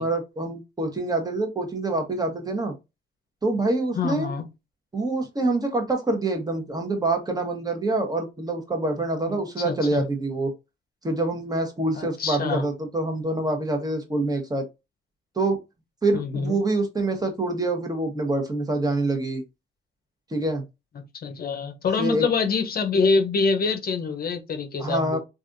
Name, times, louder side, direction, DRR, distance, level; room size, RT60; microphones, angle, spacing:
voice 1, 0.0-2.7 3.4-4.3 4.9-10.5 11.0-14.7 15.4-15.6 16.0-19.4 20.3-20.6 22.0-22.3 24.8-25.2, right 2 dB, 20° right, 1.0 m, -26 dB
voice 2, 4.0-4.5 9.3-10.0 12.0-12.6 16.1-16.6 21.2-25.2, left 4 dB, 50° left, 0.7 m, -25 dB
3.3 x 2.5 x 2.5 m
cardioid pair, 90°, 20 cm